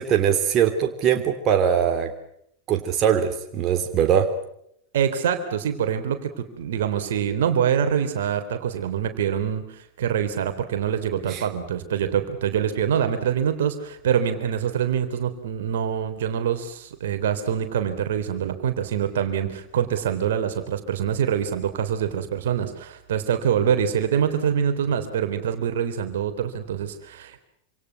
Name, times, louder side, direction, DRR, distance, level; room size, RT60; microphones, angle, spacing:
voice 1, 0.0-2.1 2.7-4.3 11.3-11.4, right 8 dB, 35° right, 5 dB, 3.1 m, -21 dB
voice 2, 4.9-27.4, right 8 dB, 60° right, 8 dB, 3.5 m, -25 dB
27.5 x 27.0 x 6.0 m, 0.73 s
figure-of-eight pair, 90°, 0 cm